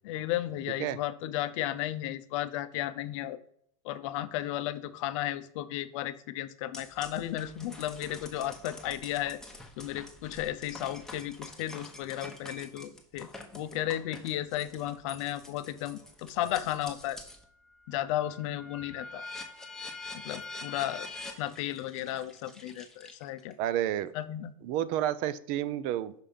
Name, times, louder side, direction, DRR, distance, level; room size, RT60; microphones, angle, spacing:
voice 1, 0.0-3.4 3.8-9.4 9.8-13.3 13.5-17.2 17.9-19.2 20.1-21.1 21.4-23.6 24.1-24.5, left 13 dB, 60° left, 13 dB, 0.5 m, -34 dB
sound 1, 6.7-17.4 17.9-23.5, left 2 dB, 5° left, 0.9 m, -46 dB
voice 2, 23.6-24.1 24.6-26.1, right 12 dB, 50° right, 15 dB, 0.5 m, -30 dB
5.7 x 3.4 x 5.4 m, 0.66 s
hypercardioid pair, 115°, 18 cm